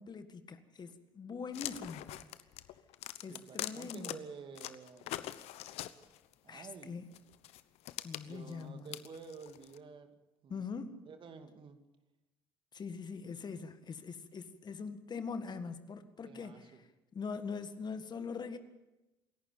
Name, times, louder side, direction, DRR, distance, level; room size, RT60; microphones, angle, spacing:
voice 1, 0.0-2.2 3.2-4.2 6.5-7.0 8.0-9.0 10.5-11.0 12.7-16.7 17.1-18.6, left 5 dB, 40° left, 1.8 m, -42 dB
sound 1, 1.5-4.1 4.6-6.3 7.1-9.8, left 14 dB, 65° left, 1.0 m, -43 dB
voice 2, 3.2-5.3 6.4-7.0 8.3-10.7 11.1-11.8 16.2-16.8, right 5 dB, 45° right, 2.5 m, -51 dB
27.5 x 11.5 x 8.7 m
hypercardioid pair, 60°, 12 cm